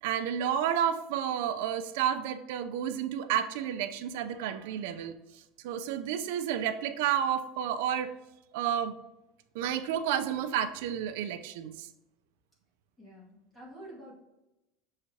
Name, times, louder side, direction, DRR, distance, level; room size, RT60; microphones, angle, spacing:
voice 1, 0.0-8.2 8.5-8.9 9.5-11.9, right 9 dB, 75° right, 10 dB, 0.6 m, -31 dB
voice 2, 13.0-14.1, right 1 dB, 10° left, -6 dB, 2.1 m, -48 dB
6.7 x 4.9 x 2.9 m, 0.95 s
cardioid pair, 170°, 0 cm